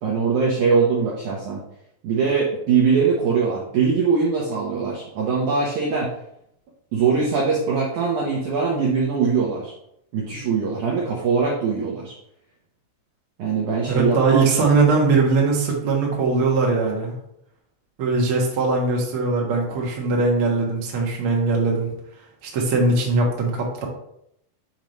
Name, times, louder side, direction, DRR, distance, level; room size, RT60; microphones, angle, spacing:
voice 1, 0.0-1.6 2.0-6.1 6.9-9.7 10.1-12.1 13.4-14.6, right 5 dB, 85° right, -3 dB, 1.7 m, -22 dB
voice 2, 13.9-17.1 18.0-21.9 22.4-23.9, right 3 dB, 70° right, -2 dB, 1.3 m, -20 dB
7.1 x 3.1 x 5.3 m, 0.76 s
omnidirectional pair, 4.9 m